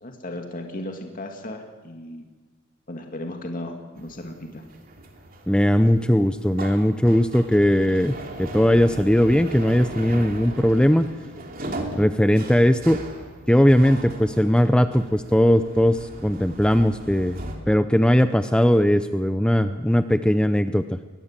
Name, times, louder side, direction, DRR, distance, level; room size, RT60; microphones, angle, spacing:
voice 1, 0.0-2.3 2.9-4.6, left 1 dB, 40° left, 3 dB, 2.3 m, -35 dB
sound 1, 4.0-17.6, right 1 dB, 45° right, 3.2 m, -38 dB
voice 2, 5.5-11.1 11.9-13.0 13.5-17.4 17.7-21.0, equal, 5° left, 10 dB, 0.6 m, -19 dB
22.5 x 20.0 x 7.5 m, 1.3 s
head